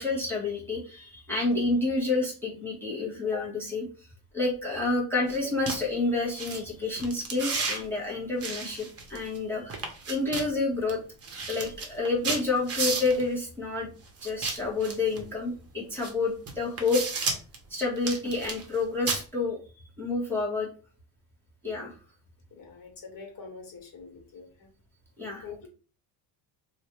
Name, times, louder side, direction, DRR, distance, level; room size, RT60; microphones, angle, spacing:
voice 1, 0.0-3.9 4.3-9.8 10.1-11.0 11.5-13.9 14.2-17.0 17.7-19.6 20.0-20.7 21.6-21.9 25.2-25.7, left 3 dB, 5° left, -4 dB, 1.1 m, -29 dB
sound 1, 5.3-5.4 5.7-5.8 6.3-6.6 7.0-7.8 8.4-9.4 9.7-10.5 10.9-11.0 11.2-13.2 14.2-15.2 16.0-16.1 16.5-17.6 18.0-18.8 19.1-19.2, right 4 dB, 30° right, 0.9 m, -32 dB
voice 2, 22.6-24.5 25.4-25.7, left 5 dB, 45° left, 2 dB, 1.5 m, -44 dB
3.1 x 2.4 x 2.9 m, 0.37 s
cardioid pair, 100°, 48 cm